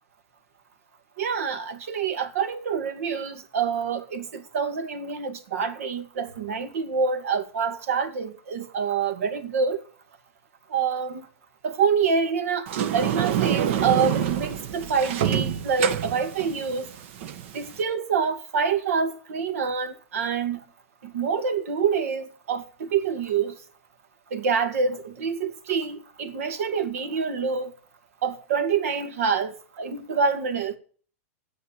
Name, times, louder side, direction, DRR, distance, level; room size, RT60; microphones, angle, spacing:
voice 1, 1.2-9.8 10.7-11.3 11.6-16.9 17.5-20.6 21.0-23.5 24.3-27.7 28.2-30.8, right 6 dB, 80° right, 2.3 m, -26 dB
Sliding door, 12.7-17.8, right 9 dB, 60° right, 1.1 m, -27 dB
10.0 x 8.0 x 8.7 m
supercardioid pair, 145°, 8 cm